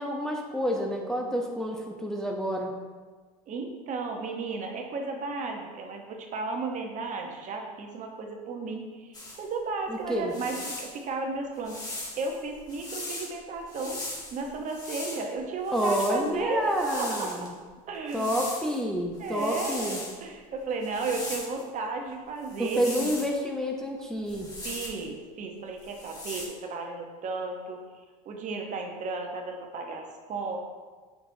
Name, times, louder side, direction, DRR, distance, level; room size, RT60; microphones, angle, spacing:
voice 1, 0.0-2.8 9.9-10.3 15.7-17.5 18.1-20.0 22.6-24.5, equal, 5° left, -1 dB, 0.8 m, -29 dB
voice 2, 3.5-14.0 14.3-16.7 16.9-17.5 17.9-18.3 19.2-23.1 24.6-27.8 28.2-30.6, right 3 dB, 40° right, 3 dB, 1.0 m, -34 dB
sound 1, 9.1-9.4 10.1-11.0 11.6-13.3 13.7-15.2 15.6-17.5 18.1-18.8 19.2-20.2 20.8-21.6 22.5-23.4 24.2-25.0 25.8-26.5, left 2 dB, 20° left, 1.9 m, -39 dB
6.6 x 6.1 x 2.8 m, 1.4 s
hypercardioid pair, 80°, 20 cm